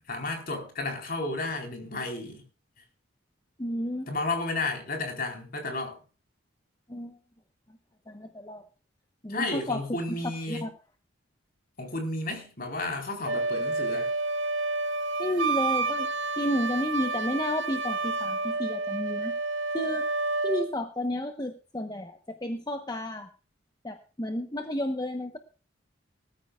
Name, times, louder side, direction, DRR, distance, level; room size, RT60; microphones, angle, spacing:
voice 1, 0.1-2.4 4.1-6.0 9.3-10.7 11.8-14.1, left 2 dB, 45° left, 4.3 m, -32 dB
voice 2, 3.6-4.1 6.9-7.2 8.1-8.6 9.2-9.8 10.5-10.7 15.2-16.1 16.4-19.3 19.7-20.1 20.4-23.3 23.8-25.4, left 1 dB, 20° left, 1.1 m, -31 dB
Wind instrument woodwind instrument, 13.2-20.7, right 3 dB, 65° right, 1.8 m, -29 dB
19.5 x 14.0 x 2.4 m
head